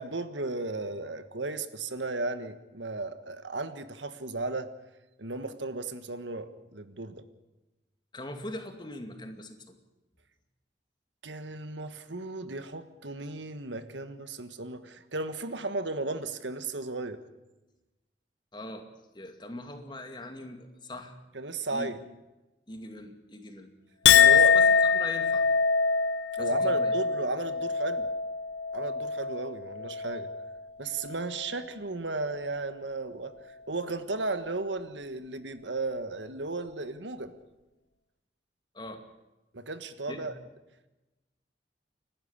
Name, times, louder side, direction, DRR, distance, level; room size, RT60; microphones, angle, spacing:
voice 1, 0.0-4.7 5.2-7.2 11.2-17.2 21.3-22.0 24.1-24.5 26.4-28.1 28.7-30.3 30.8-33.3 33.7-37.3 39.5-40.3, right 3 dB, 90° right, 11 dB, 1.5 m, -35 dB
voice 2, 8.1-9.8 18.5-18.8 19.1-21.1 21.7-21.9 22.7-23.7 24.1-24.7 24.9-25.4 26.4-26.9 38.7-39.0 40.1-40.3, left 1 dB, 25° left, 5 dB, 2.3 m, -41 dB
Chink clink, 24.0-30.6 31.0-31.6, left 6 dB, 80° left, 1.1 m, -24 dB
29.0 x 12.0 x 8.8 m, 1.1 s
head